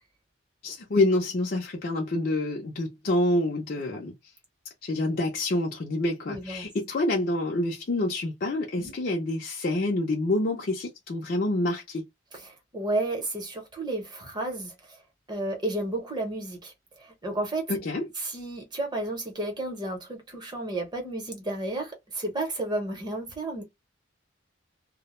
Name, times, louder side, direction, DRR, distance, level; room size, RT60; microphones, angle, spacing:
voice 1, 0.6-4.1 4.8-12.0 17.7-18.1, left 2 dB, 50° left, 0.4 m, -27 dB
voice 2, 6.3-6.7 8.8-8.9 12.3-15.0 15.3-17.7 18.2-23.6, right 2 dB, 20° right, 0.8 m, -32 dB
2.2 x 2.0 x 3.0 m
head